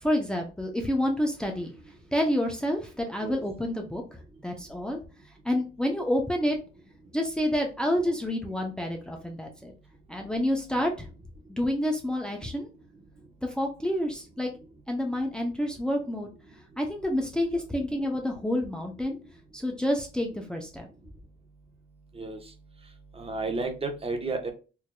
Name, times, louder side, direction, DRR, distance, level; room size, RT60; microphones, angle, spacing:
voice 1, 0.0-1.7 2.1-5.0 5.4-6.6 7.1-9.7 10.1-11.1 11.5-12.7 13.4-14.5 14.9-16.3 16.8-19.2 19.5-20.9, left 1 dB, 5° left, 2 dB, 0.7 m, -28 dB
voice 2, 23.2-24.5, right 3 dB, 30° right, 4 dB, 1.0 m, -31 dB
4.7 x 2.8 x 2.2 m, 0.34 s
cardioid pair, 90°, 20 cm